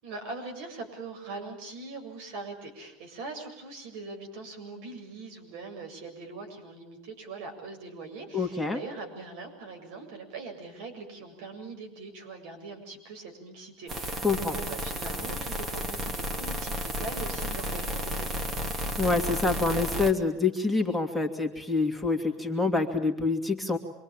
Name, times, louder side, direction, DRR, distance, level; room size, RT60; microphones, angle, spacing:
voice 1, 0.0-18.7, right 3 dB, 75° right, 4 dB, 7.6 m, -42 dB
voice 2, 8.3-8.8 14.2-14.6 19.0-23.8, left 3 dB, ahead, 6 dB, 2.5 m, -26 dB
sound 1, 13.9-20.1, equal, 30° right, 2.5 m, -32 dB
27.5 x 23.0 x 8.9 m, 0.78 s
supercardioid pair, 130°, 0 cm